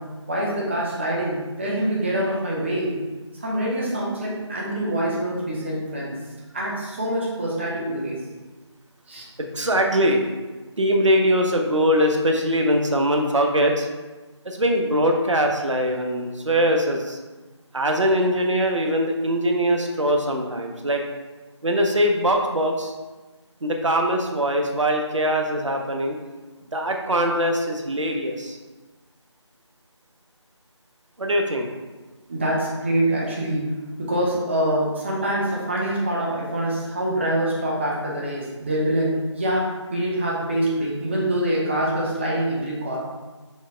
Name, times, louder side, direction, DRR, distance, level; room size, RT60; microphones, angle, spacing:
voice 1, 0.3-2.9 3.4-6.2 6.5-8.2 9.1-9.2 32.3-33.6 34.0-43.0, right 1 dB, 25° right, -4 dB, 0.7 m, -25 dB
voice 2, 9.4-10.2 10.8-13.9 14.4-17.2 17.7-21.0 21.6-22.9 23.6-26.2 26.7-28.6 31.2-31.7, equal, 85° right, 2 dB, 0.7 m, -22 dB
6.2 x 2.2 x 3.7 m, 1.3 s
figure-of-eight pair, 165°, 15 cm